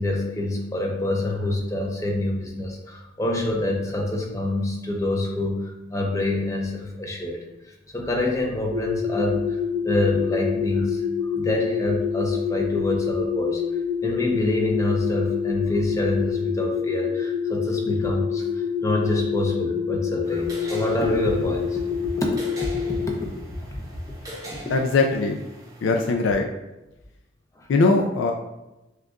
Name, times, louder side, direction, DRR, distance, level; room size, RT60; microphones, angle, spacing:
voice 1, 0.0-7.4 7.7-13.6 14.0-21.8 22.2-22.3 23.0-23.1 24.2-24.3 27.6-27.7, left 1 dB, 15° left, 0 dB, 0.5 m, -26 dB
sound 1, 8.7-23.1, left 7 dB, 60° right, 0.5 m, -27 dB
sound 2, 20.2-26.1, right 1 dB, 20° right, 0.7 m, -41 dB
voice 2, 24.7-25.4 25.8-26.5 27.7-28.3, left 3 dB, 80° left, 3 dB, 0.3 m, -20 dB
6.4 x 2.3 x 2.3 m, 0.98 s
head